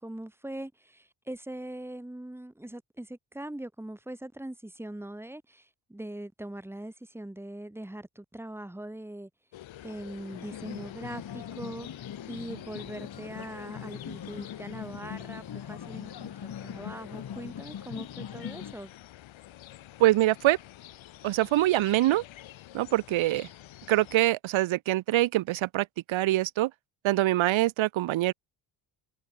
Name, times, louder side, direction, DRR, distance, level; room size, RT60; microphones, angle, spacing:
voice 1, 0.0-9.3 9.8-18.9, right 1 dB, 5° right, 3.3 m, -41 dB
sound 1, 9.5-24.2, left 13 dB, 80° left, 3.6 m, -48 dB
sound 2, 10.3-18.7, left 9 dB, 55° left, 7.5 m, -41 dB
voice 2, 20.0-20.6 21.2-22.2 22.7-23.5 23.9-26.7 27.0-28.3, right 15 dB, 85° right, 1.7 m, -24 dB
cardioid pair, 125°, 46 cm